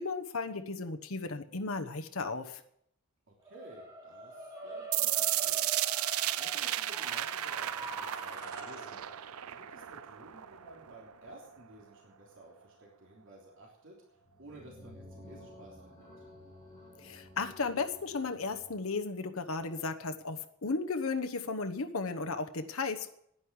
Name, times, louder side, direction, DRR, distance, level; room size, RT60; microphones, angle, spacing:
voice 1, 0.0-2.6 17.0-23.2, left 4 dB, 70° left, 6 dB, 1.1 m, -35 dB
voice 2, 3.3-5.7 6.4-9.0 9.5-16.2, right 2 dB, 65° right, -2 dB, 3.3 m, -54 dB
sound 1, 3.4-13.6, right 1 dB, 15° right, 6.9 m, -46 dB
sound 2, 4.9-10.9, right 14 dB, 85° right, 0.5 m, -34 dB
sound 3, 14.2-18.8, left 1 dB, 20° left, 7.2 m, -53 dB
11.0 x 9.7 x 8.5 m, 0.71 s
head